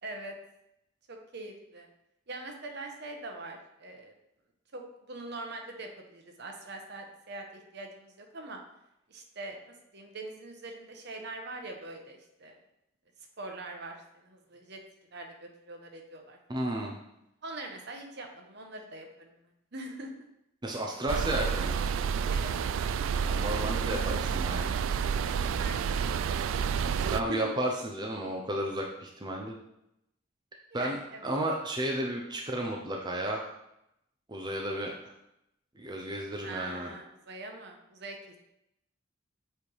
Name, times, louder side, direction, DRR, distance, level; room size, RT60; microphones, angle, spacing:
voice 1, 0.0-0.3 1.1-1.9 2.3-4.1 4.7-4.8 5.1-8.6 9.1-12.6 13.4-14.0 14.2-14.8 15.1-16.4 17.4-19.3 19.7-20.2 22.3-22.5 25.2-26.4 26.7-27.5 30.7-31.3 34.7-35.0 36.4-38.2, right 2 dB, 60° right, 3 dB, 1.0 m, -43 dB
voice 2, 16.5-16.9 20.6-21.8 23.2-24.7 27.1-29.5 30.7-33.5 34.3-34.9 35.8-36.9, right 1 dB, 20° right, 0 dB, 0.6 m, -33 dB
sound 1, 21.1-27.2, right 6 dB, 80° right, 0.3 m, -29 dB
7.5 x 3.4 x 4.7 m, 0.83 s
head